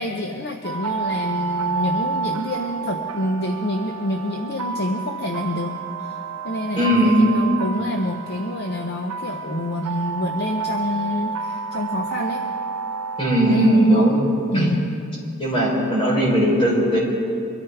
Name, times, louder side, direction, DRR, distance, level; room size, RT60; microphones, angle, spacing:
voice 1, 0.0-5.7 6.0-6.1 6.4-12.4 13.5-14.1 14.5-14.9, left 1 dB, 45° left, 3 dB, 0.7 m, -27 dB
sound 1, 0.6-14.5, right 6 dB, 90° right, 0.7 m, -30 dB
voice 2, 6.8-7.3 13.2-14.2 14.5-14.7 15.4-17.0, right 1 dB, 25° left, -5 dB, 4.2 m, -18 dB
23.5 x 13.5 x 3.5 m, 2.5 s
head